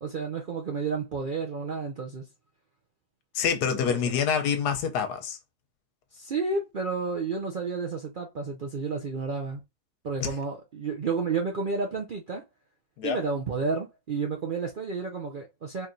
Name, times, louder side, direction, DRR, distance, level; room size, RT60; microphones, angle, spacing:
voice 1, 0.0-2.3 3.7-4.0 6.1-9.6 10.0-12.4 13.0-15.9, right 4 dB, 65° right, 0.5 m, -31 dB
voice 2, 3.3-5.4 10.2-10.3 13.0-13.2, left 7 dB, 80° left, 1.3 m, -26 dB
4.5 x 3.1 x 2.6 m
omnidirectional pair, 1.7 m